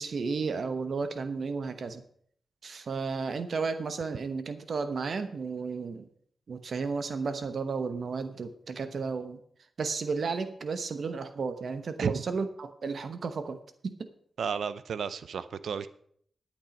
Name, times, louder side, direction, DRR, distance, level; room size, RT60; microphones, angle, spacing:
voice 1, 0.0-2.0 2.6-6.1 6.5-9.4 9.8-13.6 13.8-14.1, right 4 dB, 70° right, 10 dB, 1.0 m, -33 dB
voice 2, 14.4-15.9, right 6 dB, 85° right, 14 dB, 0.6 m, -32 dB
12.0 x 8.7 x 5.2 m, 0.62 s
cardioid pair, 75°, 0 cm